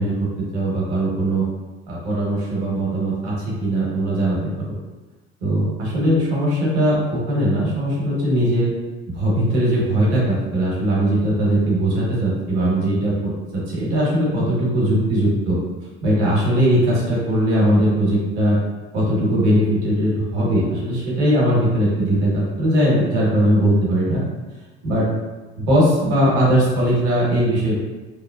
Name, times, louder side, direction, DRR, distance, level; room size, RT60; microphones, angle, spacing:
voice 1, 0.0-1.5 1.9-4.4 5.4-8.7 9.1-15.6 16.0-18.6 18.9-24.2 24.8-25.1 25.6-27.7, right 1 dB, 65° right, -5 dB, 1.0 m, -19 dB
3.0 x 2.1 x 2.2 m, 1.2 s
figure-of-eight pair, 60°, 33 cm